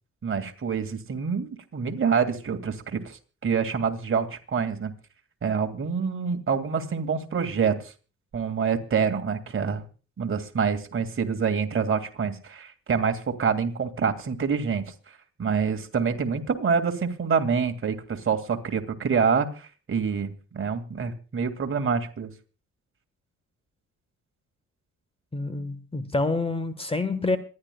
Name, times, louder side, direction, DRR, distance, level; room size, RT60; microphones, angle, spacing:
voice 1, 0.2-4.9 5.4-7.9 8.3-9.8 10.2-14.9 15.4-22.3, right 6 dB, 45° right, 6 dB, 2.2 m, -26 dB
voice 2, 25.3-27.4, left 3 dB, 20° left, 13 dB, 1.3 m, -27 dB
26.5 x 11.0 x 2.3 m, 0.36 s
cardioid pair, 90°, 30 cm